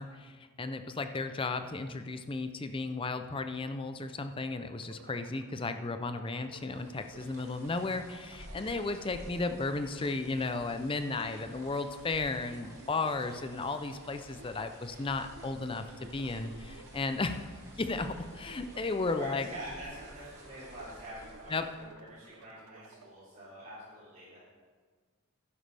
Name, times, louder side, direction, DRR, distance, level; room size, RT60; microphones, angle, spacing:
voice 1, 0.0-17.4 17.8-19.5 21.5-21.7, left 3 dB, 25° left, 8 dB, 0.5 m, -34 dB
sound 1, 4.8-23.1, right 4 dB, 85° right, 0.7 m, -55 dB
sound 2, 6.6-21.9, equal, 15° right, 2.1 m, -52 dB
voice 2, 19.1-24.4, right 1 dB, 35° right, -12 dB, 3.2 m, -46 dB
11.5 x 10.5 x 3.4 m, 1.5 s
head